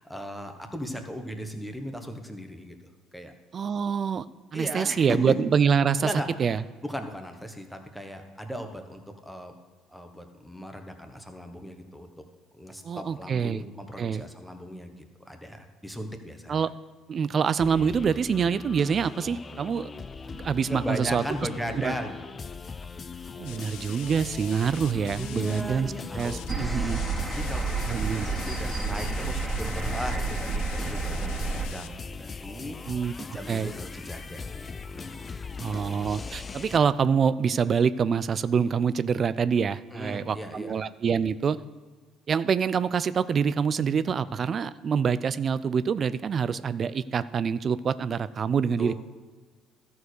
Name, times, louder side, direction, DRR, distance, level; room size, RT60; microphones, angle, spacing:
voice 1, 0.0-2.7 3.1-3.3 4.5-5.3 6.0-6.3 6.8-9.5 9.9-12.1 12.6-16.6 20.7-22.2 25.2-26.4 27.3-32.8 33.3-35.3 39.9-40.8 48.8-48.9, equal, ahead, 5 dB, 1.4 m, -37 dB
voice 2, 3.5-4.3 4.5-6.1 6.4-6.6 12.8-13.6 14.0-14.2 16.5-16.7 17.1-19.9 20.3-21.2 21.7-21.9 23.4-27.0 27.9-28.2 32.9-33.1 33.5-33.7 35.6-41.6 42.3-48.9, right 6 dB, 45° right, 16 dB, 0.4 m, -26 dB
sound 1, 17.6-36.8, left 4 dB, 30° left, 0.5 m, -40 dB
sound 2, 23.4-25.6 26.1-26.5 26.8-31.9, left 11 dB, 75° left, 0.6 m, -45 dB
sound 3, 26.5-31.7, right 4 dB, 20° right, 2.4 m, -30 dB
13.0 x 4.6 x 6.4 m, 1.4 s
supercardioid pair, 70°, 0 cm